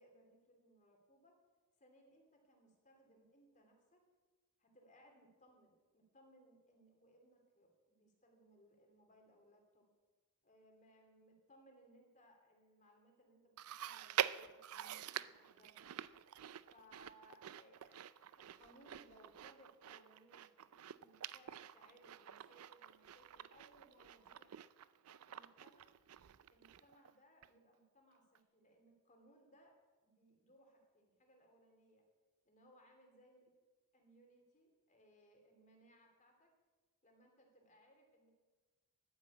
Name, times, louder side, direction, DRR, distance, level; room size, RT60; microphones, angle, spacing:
voice 1, 0.0-1.4 1.8-4.0 4.6-9.9 10.4-16.0 16.7-24.6 25.3-25.9 26.5-29.7 30.0-32.0 32.4-33.5 33.9-36.5 37.0-38.3, equal, 35° left, 2 dB, 2.9 m, -67 dB
Chewing mastication, 13.6-27.1 27.4-27.5 28.3-28.4, right 11 dB, 70° right, 0.4 m, -46 dB
11.5 x 9.7 x 8.5 m, 1.3 s
head